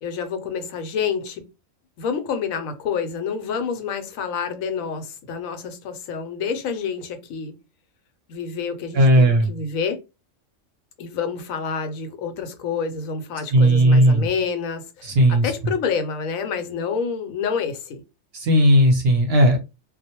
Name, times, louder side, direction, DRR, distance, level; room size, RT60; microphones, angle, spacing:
voice 1, 0.0-1.4 2.0-7.6 8.3-10.0 11.0-18.0, left 6 dB, 85° left, 1.0 m, -28 dB
voice 2, 8.9-9.5 13.5-14.3 15.0-15.5 18.3-19.6, equal, 60° right, 0.7 m, -16 dB
2.3 x 2.0 x 2.8 m
omnidirectional pair, 1.4 m